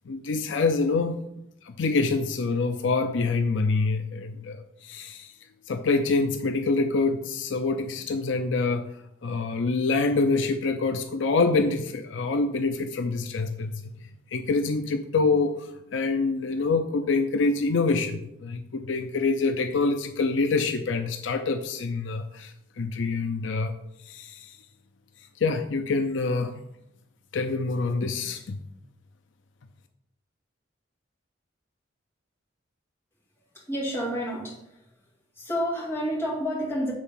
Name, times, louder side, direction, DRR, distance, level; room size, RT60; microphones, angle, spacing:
voice 1, 0.1-1.2 1.7-5.3 5.7-8.8 9.2-13.7 14.3-23.7 24.1-24.6 25.4-26.6 27.3-28.6, left 3 dB, 75° left, 7 dB, 0.5 m, -26 dB
voice 2, 33.5-34.9 35.4-36.9, equal, 15° left, -6 dB, 2.2 m, -29 dB
7.8 x 3.6 x 5.7 m, 0.81 s
head